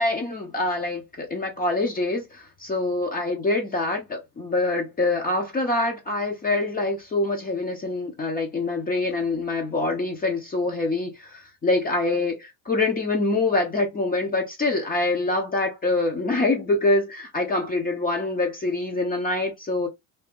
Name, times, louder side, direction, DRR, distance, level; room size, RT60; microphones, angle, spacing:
voice 1, 0.0-19.9, left 2 dB, 25° left, 0.8 m, -25 dB
2.7 x 2.3 x 3.5 m
supercardioid pair, 110°, 38 cm